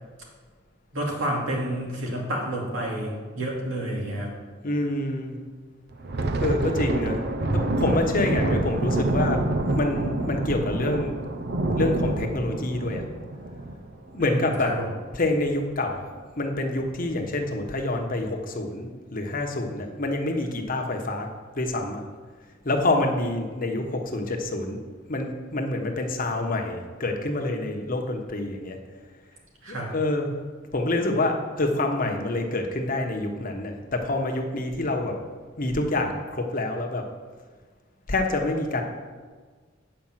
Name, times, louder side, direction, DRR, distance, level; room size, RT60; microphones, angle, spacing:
voice 1, 0.9-4.3 14.2-14.9 29.6-29.9, right 1 dB, 90° right, -2 dB, 2.4 m, -29 dB
voice 2, 4.6-5.4 6.4-7.2 7.5-9.4 9.8-11.1 11.7-13.0 14.1-14.7 15.1-16.1 16.4-21.3 21.5-22.0 22.6-24.8 25.1-28.8 29.7-30.3 30.7-35.1 35.6-37.0 38.1-38.8, left 2 dB, 45° left, 3 dB, 1.1 m, -27 dB
Thunder, 5.9-15.0 15.3-15.5 15.9-16.2 16.8-17.3, right 2 dB, 55° right, 0.6 m, -27 dB
8.9 x 5.1 x 7.4 m, 1.5 s
head